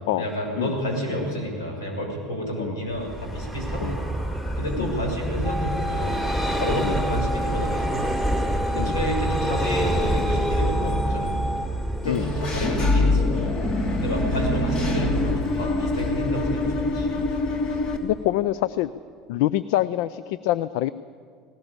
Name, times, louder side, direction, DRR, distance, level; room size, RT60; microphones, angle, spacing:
voice 1, 0.2-4.0 4.6-6.2 6.6-8.1 8.7-11.3 12.0-13.4 14.0-17.1, equal, 80° left, 1 dB, 6.4 m, -30 dB
Vehicle, 2.9-18.4, right 1 dB, 15° left, 3.6 m, -28 dB
sound 1, 5.4-11.7, equal, 30° right, 0.7 m, -31 dB
Engine / Mechanisms, 12.0-18.0, left 2 dB, 40° left, 2.8 m, -24 dB
voice 2, 18.0-18.9 19.3-20.9, left 14 dB, 65° left, 16 dB, 0.5 m, -26 dB
19.0 x 19.0 x 8.8 m, 2.1 s
hypercardioid pair, 75°, 2 cm